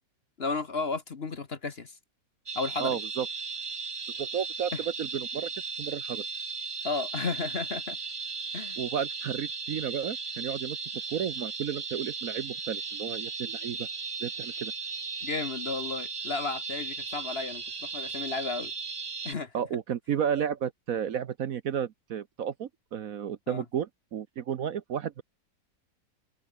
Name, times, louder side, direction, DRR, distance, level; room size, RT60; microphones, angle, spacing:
voice 1, 0.4-2.0 2.5-3.0 4.7-4.8 6.8-8.0 8.5-8.8 15.2-18.7 19.2-19.5 23.5-23.6, left 4 dB, 40° left, 1.3 m, -33 dB
sound 1, 2.5-19.3, right 4 dB, 30° right, 0.6 m, -36 dB
voice 2, 2.8-3.3 4.2-5.5 5.8-6.2 8.8-10.8 11.1-13.9 14.2-14.7 19.5-25.2, right 8 dB, 60° right, 1.1 m, -32 dB
omnidirectional pair, 1.9 m